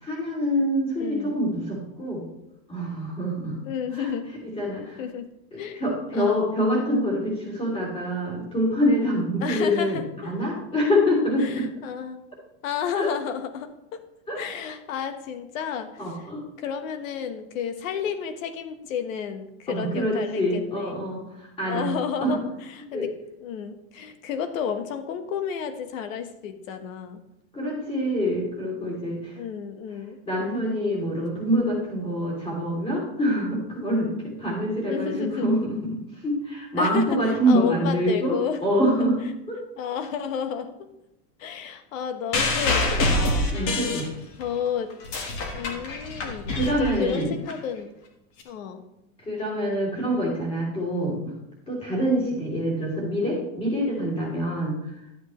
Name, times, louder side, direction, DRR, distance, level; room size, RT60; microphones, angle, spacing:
voice 1, 0.0-2.2 2.7-3.5 3.9-4.1 4.4-5.0 5.5-11.7 13.0-13.1 14.3-14.4 16.0-16.4 19.7-21.9 22.2-22.4 22.9-23.1 27.5-29.3 30.3-39.2 39.5-39.6 43.5-44.1 46.5-47.3 49.2-51.3 51.7-54.7, equal, 15° left, -3 dB, 3.0 m, -25 dB
voice 2, 1.0-1.4 3.6-4.3 5.0-5.3 5.6-5.8 6.1-6.5 9.4-10.3 11.4-12.2 12.6-14.0 14.4-16.3 16.6-21.0 21.6-22.4 22.7-23.1 23.4-27.2 29.3-30.2 34.9-35.5 36.8-37.2 37.5-38.6 39.0-39.1 39.8-40.9 41.4-43.9 44.4-44.9 45.5-47.9 48.4-48.8, left 7 dB, 85° left, 8 dB, 1.4 m, -32 dB
sound 1, 42.3-44.5 44.9-47.5 48.4-48.5, left 2 dB, 35° left, 1.5 m, -26 dB
12.0 x 8.0 x 3.1 m, 0.85 s
supercardioid pair, 180°, 39 cm